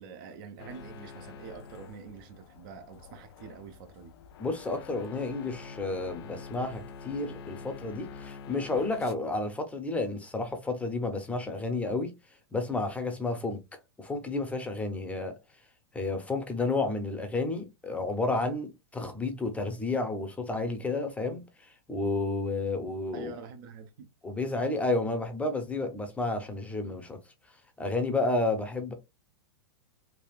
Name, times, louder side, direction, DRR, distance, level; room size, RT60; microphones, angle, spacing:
voice 1, 0.0-4.1 23.1-24.1, right 5 dB, 55° right, 0.7 m, -45 dB
sound 1, 0.6-9.1, left 5 dB, 70° left, 0.4 m, -46 dB
voice 2, 4.4-12.1 12.5-13.6 14.0-15.4 15.9-21.4 21.9-23.3 24.2-27.2 27.8-28.9, left 2 dB, 10° left, 0.6 m, -31 dB
3.4 x 2.4 x 2.3 m
hypercardioid pair, 125°, 14 cm